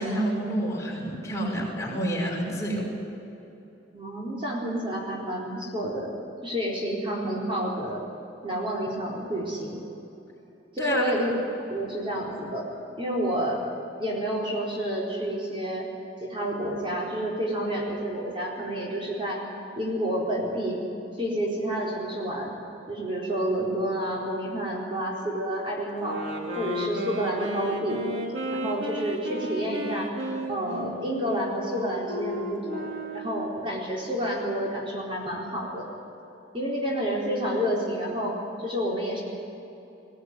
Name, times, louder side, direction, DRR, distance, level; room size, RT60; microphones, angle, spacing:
voice 1, 0.0-2.9 10.8-11.0, equal, 15° left, -3 dB, 5.8 m, -28 dB
voice 2, 3.9-6.1 6.4-8.0 8.4-9.8 10.7-11.3 11.7-12.6 13.0-13.6 14.0-15.9 16.2-19.4 19.8-20.8 21.2-22.5 22.9-26.2 26.6-28.0 28.5-30.1 30.5-32.9 33.1-35.9 36.5-39.2, equal, 30° right, -4 dB, 4.2 m, -29 dB
sound 1, 26.0-33.5, equal, 85° right, 3.3 m, -33 dB
21.0 x 18.5 x 9.7 m, 2.9 s
head